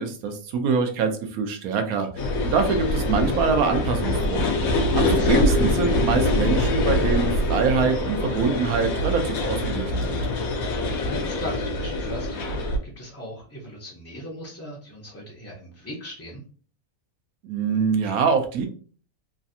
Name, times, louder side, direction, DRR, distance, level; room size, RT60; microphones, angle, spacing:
voice 1, 0.0-2.1 2.4-4.4 4.9-10.2 17.4-18.7, right 5 dB, 85° right, 6 dB, 1.1 m, -24 dB
sound 1, 2.2-12.8, left 2 dB, 75° left, 1.1 m, -24 dB
voice 2, 5.1-5.4 10.9-16.4, equal, 20° left, -4 dB, 0.4 m, -38 dB
3.2 x 2.4 x 2.6 m, 0.41 s
omnidirectional pair, 1.5 m